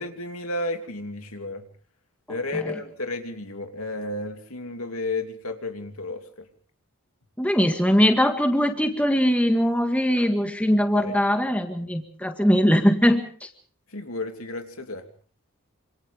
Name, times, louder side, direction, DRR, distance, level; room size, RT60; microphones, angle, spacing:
voice 1, 0.0-1.6 2.3-6.5 10.9-11.2 13.9-15.1, left 2 dB, 80° left, 5 dB, 2.9 m, -32 dB
voice 2, 2.3-2.8 7.4-13.5, equal, 5° left, 5 dB, 2.0 m, -21 dB
27.5 x 27.0 x 3.6 m, 0.42 s
head